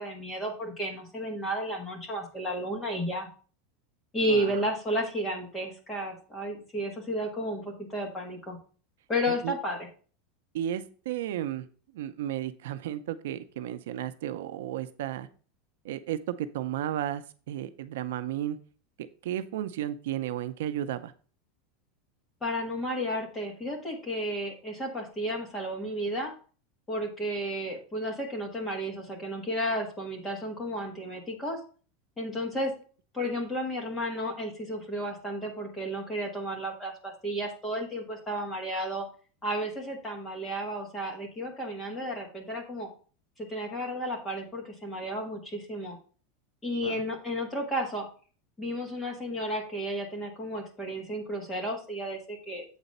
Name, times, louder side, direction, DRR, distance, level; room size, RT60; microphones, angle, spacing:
voice 1, 0.0-3.3 4.1-8.6 9.1-9.9 22.4-26.3 26.9-31.6 32.2-32.7 33.1-39.0 39.4-42.9 43.4-46.0 46.6-48.1 48.6-52.8, equal, 10° left, 0 dB, 1.6 m, -32 dB
voice 2, 4.3-4.6 9.4-9.5 10.5-11.7 11.9-15.3 15.8-18.6 19.2-21.1 46.8-47.0, right 11 dB, 75° right, 11 dB, 0.6 m, -33 dB
8.0 x 4.1 x 5.4 m, 0.39 s
supercardioid pair, 175°, 0 cm